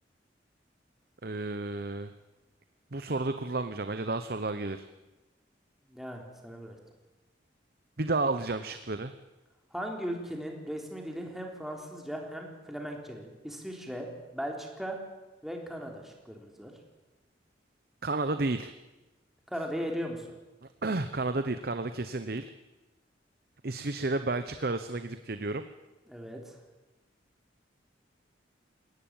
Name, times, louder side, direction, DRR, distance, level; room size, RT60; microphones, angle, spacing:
voice 1, 1.2-2.1 2.9-4.9 8.0-9.1 18.0-18.7 20.6-22.5 23.6-25.7, right 2 dB, 55° right, 10 dB, 0.9 m, -32 dB
voice 2, 5.8-6.7 9.7-14.1 14.3-15.0 15.4-16.7 19.5-20.3 26.1-26.6, equal, ahead, 1 dB, 3.5 m, -38 dB
21.5 x 18.0 x 8.9 m, 1.1 s
head